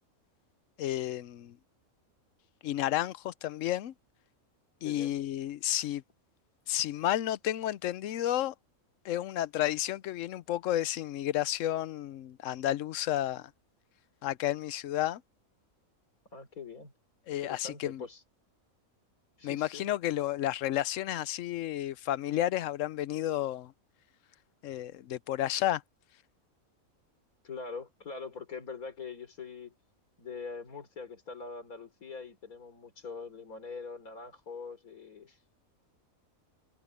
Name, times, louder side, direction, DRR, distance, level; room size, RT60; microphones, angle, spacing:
voice 1, 0.8-1.6 2.6-3.9 4.8-6.0 6.7-8.5 9.0-13.5 14.2-15.2 17.3-18.0 19.4-23.7 24.6-25.8, left 13 dB, 70° left, 1.0 m, -31 dB
voice 2, 16.3-16.9 17.3-18.2 19.4-19.9 27.4-29.8 30.2-35.4, left 5 dB, 85° left, 3.9 m, -43 dB
omnidirectional pair, 1.5 m